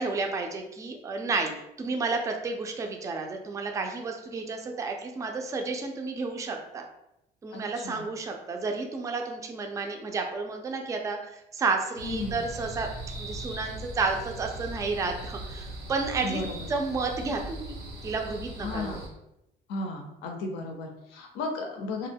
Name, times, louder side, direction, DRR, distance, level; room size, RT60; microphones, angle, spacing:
voice 1, 0.0-1.5 1.8-6.8 7.4-12.9 13.1-16.4 16.7-17.8 18.0-19.0, right 4 dB, 20° right, 3 dB, 0.3 m, -31 dB
voice 2, 7.5-8.1 12.0-12.4 16.2-16.7 18.6-19.1 19.7-22.1, left 2 dB, 90° left, 2 dB, 0.4 m, -34 dB
sound 1, 12.0-19.1, right 1 dB, 90° right, 1.1 m, -39 dB
2.2 x 2.0 x 3.3 m, 0.85 s
cardioid pair, 110°, 17 cm